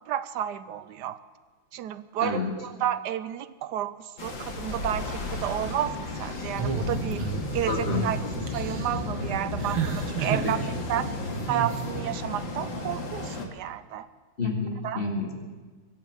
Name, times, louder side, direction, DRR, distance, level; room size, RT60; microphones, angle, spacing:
voice 1, 0.1-1.2 1.7-8.2 8.5-11.1 11.5-14.1 14.8-15.0, right 11 dB, 70° right, 14 dB, 1.0 m, -31 dB
voice 2, 2.2-2.5 7.7-8.1 10.3-10.5 14.4-15.3, left 4 dB, 30° left, 1 dB, 2.1 m, -29 dB
sound 1, 4.2-13.5, left 2 dB, 65° left, 2.6 m, -33 dB
sound 2, 6.6-7.5 7.9-8.1 8.5-9.0 9.6-10.5 11.5-11.8, right 7 dB, 85° right, 2.1 m, -31 dB
23.5 x 8.4 x 6.5 m, 1.4 s
omnidirectional pair, 2.2 m